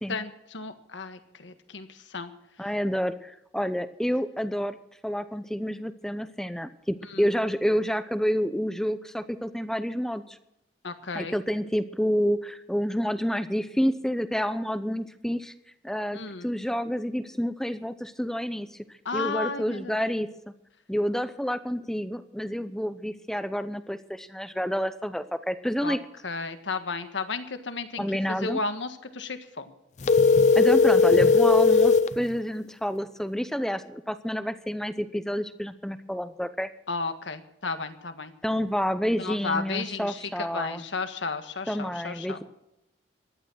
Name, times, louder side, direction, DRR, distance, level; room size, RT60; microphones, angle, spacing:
voice 1, 0.1-2.3 7.1-7.3 10.8-11.4 16.1-16.5 19.0-20.0 25.8-26.0 26.2-29.6 36.9-38.3 39.2-42.4, left 4 dB, 85° left, 9 dB, 1.6 m, -33 dB
voice 2, 2.6-4.8 5.0-10.4 11.1-15.5 15.8-18.7 19.1-20.3 20.9-26.0 28.0-28.6 30.6-36.7 38.4-40.8 41.7-42.4, equal, 5° left, 11 dB, 0.7 m, -29 dB
sound 1, 30.0-32.1, left 4 dB, 40° left, 0.5 m, -18 dB
15.0 x 11.5 x 6.3 m, 0.85 s
head